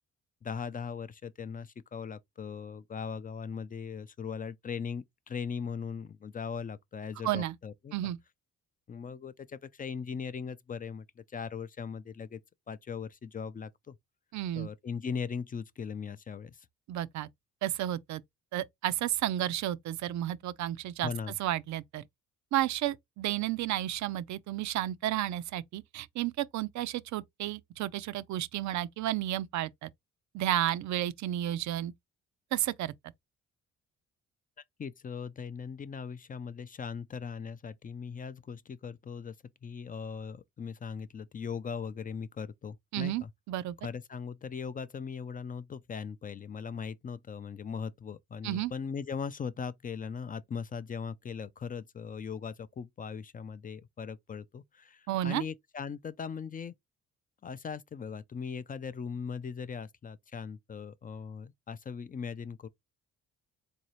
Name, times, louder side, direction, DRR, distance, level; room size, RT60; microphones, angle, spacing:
voice 1, 0.4-8.1 8.9-12.4 12.7-14.0 14.5-16.7 21.0-21.3 34.8-39.4 39.6-43.3 43.8-56.7 57.4-62.7, left 6 dB, 30° left, 0.4 m, -39 dB
voice 2, 7.2-7.6 7.9-8.2 14.3-14.7 16.9-17.3 17.6-18.2 18.5-21.1 21.4-22.0 22.5-29.9 30.3-31.9 32.5-32.9 42.9-43.7 48.4-48.7 55.1-55.4, right 13 dB, 70° right, 0.5 m, -32 dB
3.9 x 2.7 x 3.0 m
cardioid pair, 90°, 30 cm